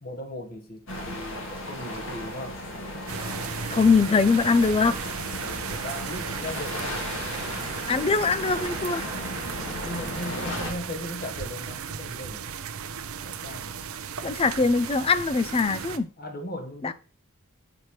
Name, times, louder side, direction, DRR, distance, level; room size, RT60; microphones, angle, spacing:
voice 1, 0.0-2.6 5.4-7.0 8.3-8.6 9.8-12.5 13.2-13.7 16.2-16.9, left 1 dB, 45° left, 1.3 m, -38 dB
sound 1, 0.9-10.7, left 1 dB, 60° left, 1.9 m, -35 dB
sound 2, 3.1-16.0, right 7 dB, 75° right, 0.6 m, -35 dB
voice 2, 3.7-5.0 7.9-9.1 14.2-16.1 16.8-16.9, left 4 dB, 25° left, 0.4 m, -22 dB
7.7 x 5.7 x 3.1 m
head